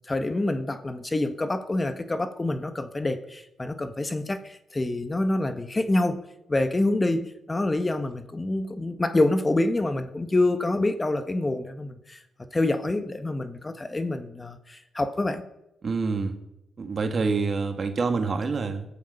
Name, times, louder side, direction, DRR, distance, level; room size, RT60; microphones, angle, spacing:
voice 1, 0.1-6.2 6.5-12.2 12.5-15.4, left 2 dB, 25° left, 10 dB, 1.4 m, -26 dB
voice 2, 15.8-16.4 16.8-18.9, right 4 dB, 50° right, 6 dB, 2.3 m, -26 dB
19.5 x 12.0 x 5.5 m, 0.86 s
supercardioid pair, 55°, 0 cm